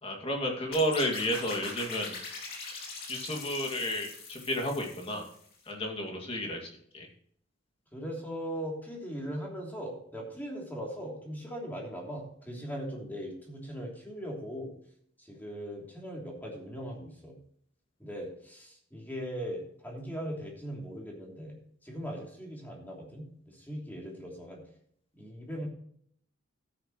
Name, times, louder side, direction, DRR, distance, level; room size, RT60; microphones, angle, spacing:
voice 1, 0.0-2.2 3.1-5.3 5.7-7.1, equal, 25° left, 1 dB, 2.3 m, -32 dB
sound 1, 0.7-5.5, left 3 dB, 45° left, 2.8 m, -42 dB
voice 2, 7.9-14.7 15.2-17.4 18.0-21.6 21.8-24.6 25.2-25.7, equal, 10° left, -2 dB, 3.0 m, -39 dB
13.0 x 9.7 x 3.1 m, 0.63 s
head